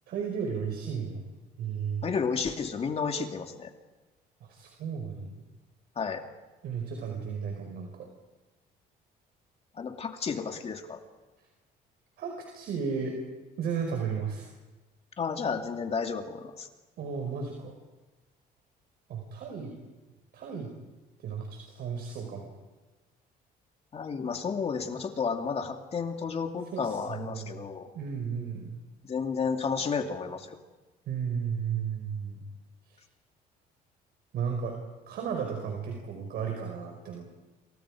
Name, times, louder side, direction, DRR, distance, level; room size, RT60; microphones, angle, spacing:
voice 1, 0.1-1.2 1.6-2.0 4.5-5.3 6.6-8.1 12.2-13.2 13.6-14.5 17.0-17.7 19.1-19.7 20.3-20.7 21.2-22.5 26.7-27.5 27.9-28.7 31.1-32.4 32.9-33.0 34.3-34.7 35.1-37.4, right 6 dB, 70° right, 2 dB, 5.3 m, -34 dB
voice 2, 2.0-3.7 6.0-6.2 9.7-11.0 15.2-16.7 23.9-27.9 29.0-30.6, left 5 dB, 35° left, 4 dB, 2.6 m, -32 dB
29.5 x 28.0 x 5.1 m, 1.2 s
cardioid pair, 110°, 17 cm